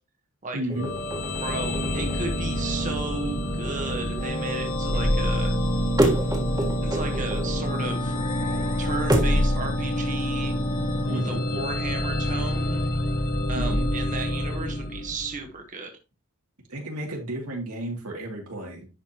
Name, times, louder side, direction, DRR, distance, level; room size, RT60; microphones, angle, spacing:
voice 1, 0.5-0.9 11.1-11.4 13.5-13.9 16.7-18.9, right 1 dB, 90° right, 0 dB, 2.6 m, -33 dB
sound 1, 0.7-9.5, right 1 dB, 20° right, 1.5 m, -31 dB
sound 2, 0.8-15.5, left 1 dB, 45° left, 1.1 m, -27 dB
voice 2, 1.4-5.5 6.8-8.2 8.8-10.5 11.1-12.8 13.5-15.9, right 3 dB, 35° right, 3 dB, 1.1 m, -34 dB
10.5 x 5.2 x 2.9 m, 0.30 s
head